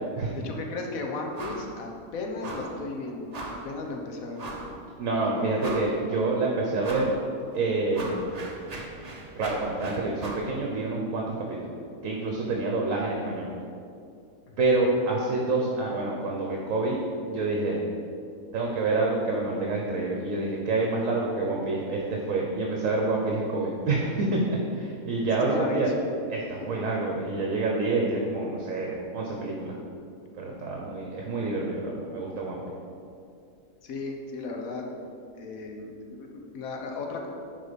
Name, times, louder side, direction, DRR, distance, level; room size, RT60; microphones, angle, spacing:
voice 1, 0.3-3.3 3.6-4.7 5.2-5.5 14.5-14.6 25.5-26.1 33.8-34.8 35.4-37.3, left 3 dB, 65° left, 2 dB, 1.3 m, -35 dB
sound 1, 1.3-1.7 2.0-2.1 2.4-2.8 3.3-3.7 4.4-4.7 5.2-5.3 5.6-6.1 6.8-7.2 7.5-10.5, right 2 dB, 35° right, 0.7 m, -38 dB
voice 2, 5.0-7.1 7.5-8.2 9.4-11.7 12.0-13.5 14.6-17.0 17.3-17.8 18.5-25.9 26.3-29.7 30.4-32.6, right 3 dB, 60° right, -1 dB, 1.2 m, -27 dB
10.0 x 4.1 x 5.2 m, 2.5 s
omnidirectional pair, 1.7 m